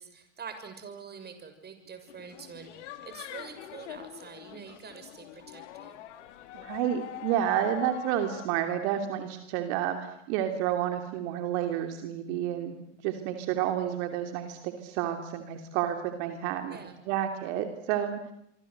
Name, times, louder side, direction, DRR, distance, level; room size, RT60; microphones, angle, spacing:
voice 1, 0.0-6.0 16.7-16.9, right 6 dB, 25° right, 8 dB, 6.6 m, -46 dB
sound 1, 2.1-8.5, left 13 dB, 70° left, 3.1 m, -44 dB
voice 2, 6.5-16.8 17.0-18.2, right 10 dB, 60° right, 6 dB, 3.0 m, -30 dB
27.0 x 24.5 x 8.0 m, 0.79 s
hypercardioid pair, 95°, 37 cm